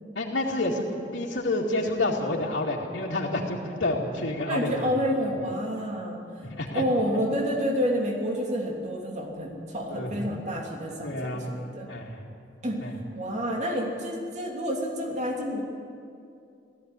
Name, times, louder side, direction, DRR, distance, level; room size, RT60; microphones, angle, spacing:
voice 1, 0.2-0.9 1.1-4.9 6.5-6.8 9.9-10.1 11.0-11.5 11.9-12.2 12.8-12.9, left 2 dB, 90° left, -6 dB, 2.4 m, -29 dB
voice 2, 4.4-6.2 6.7-11.9 12.6-12.9 13.1-15.6, equal, 40° right, 0 dB, 2.8 m, -29 dB
17.5 x 15.5 x 9.7 m, 2.5 s
head